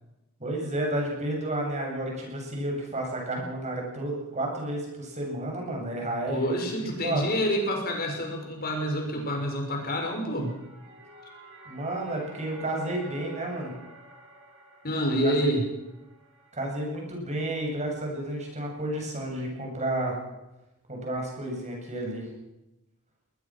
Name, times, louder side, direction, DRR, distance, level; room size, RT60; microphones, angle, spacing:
voice 1, 0.4-7.3 11.7-13.7 15.2-15.5 16.5-20.2 20.9-22.3, right 1 dB, 35° right, 1 dB, 7.9 m, -31 dB
voice 2, 6.3-10.5 14.8-15.6, equal, 45° left, 2 dB, 6.5 m, -28 dB
sound 1, 10.1-17.0, right 1 dB, 55° right, 7.9 m, -51 dB
21.0 x 21.0 x 6.3 m, 0.97 s
head